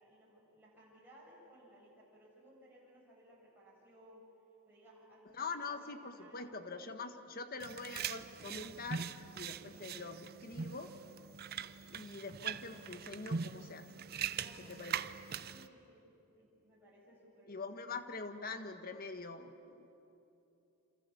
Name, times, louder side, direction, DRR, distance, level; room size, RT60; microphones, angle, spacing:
voice 1, 0.0-4.2 4.7-6.4 14.3-16.0 16.4-17.7, equal, 10° right, -6 dB, 7.2 m, -61 dB
voice 2, 5.2-9.1 9.3-10.9 11.9-13.9 14.6-15.0 17.5-19.9, left 4 dB, 45° left, 8 dB, 1.4 m, -44 dB
sound 1, 7.6-15.7, right 7 dB, 50° right, 0.6 m, -42 dB
28.0 x 27.0 x 7.1 m, 2.8 s
head